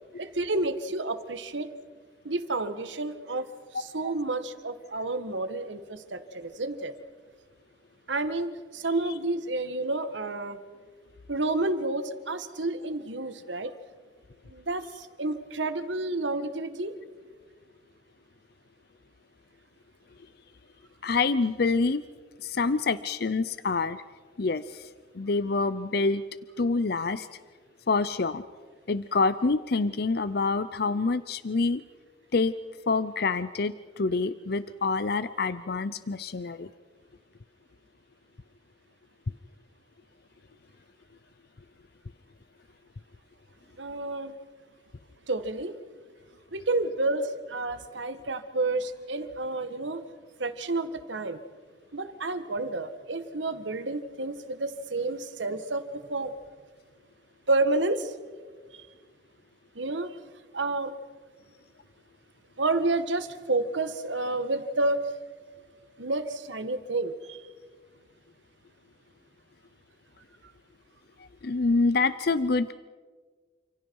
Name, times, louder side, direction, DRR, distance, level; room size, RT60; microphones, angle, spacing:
voice 1, 0.2-1.7 2.2-3.5 3.8-6.9 8.1-10.6 11.3-13.7 14.5-16.9 43.8-44.4 45.3-45.8 46.5-50.0 50.4-51.4 51.9-55.8 56.1-56.3 57.5-58.2 58.7-58.8 59.7-60.2 60.5-60.9 62.6-65.0 66.0-67.4, right 2 dB, 90° right, 10 dB, 1.7 m, -30 dB
voice 2, 21.0-22.0 22.4-24.0 24.4-24.9 25.1-26.2 26.6-27.3 27.9-28.4 28.9-31.8 32.3-32.5 32.9-36.7 71.4-72.7, left 3 dB, 60° left, 14 dB, 0.6 m, -26 dB
29.5 x 27.0 x 4.8 m, 1.5 s
head